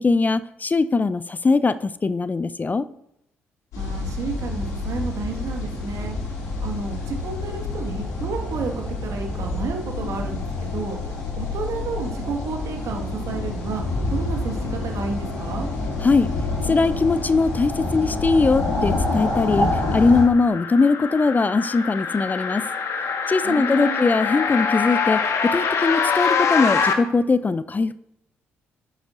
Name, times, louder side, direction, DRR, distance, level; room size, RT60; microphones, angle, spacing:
voice 1, 0.0-2.9 16.0-16.3 16.6-22.7 23.3-28.0, left 4 dB, 30° left, 15 dB, 0.5 m, -21 dB
sound 1, 3.7-20.2, left 2 dB, 70° left, 2.9 m, -27 dB
voice 2, 3.8-6.2 6.6-15.7 23.4-24.1, right 4 dB, 60° right, 3 dB, 1.8 m, -31 dB
sound 2, 18.6-26.9, left 6 dB, 55° left, 1.3 m, -25 dB
11.5 x 8.0 x 2.6 m, 0.82 s
hypercardioid pair, 45°, 6 cm